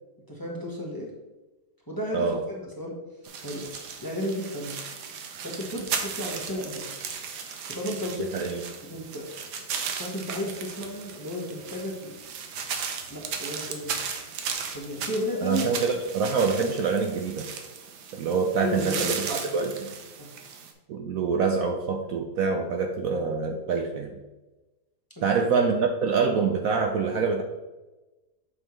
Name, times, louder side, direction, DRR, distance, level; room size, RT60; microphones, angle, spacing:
voice 1, 0.3-1.1 1.9-3.0 3.4-4.8 5.4-6.9 7.7-8.3 8.9-9.3 9.9-12.2 13.1-13.9 14.7-15.7 18.6-19.4 20.2-20.3, left 1 dB, 15° left, -3 dB, 1.2 m, -33 dB
sound 1, 3.3-20.7, right 6 dB, 85° right, 1.4 m, -36 dB
voice 2, 8.2-8.6 15.4-17.5 18.1-19.9 20.9-24.2 25.2-27.4, right 5 dB, 70° right, 3 dB, 0.9 m, -26 dB
7.8 x 5.5 x 3.1 m, 1.1 s
omnidirectional pair, 1.8 m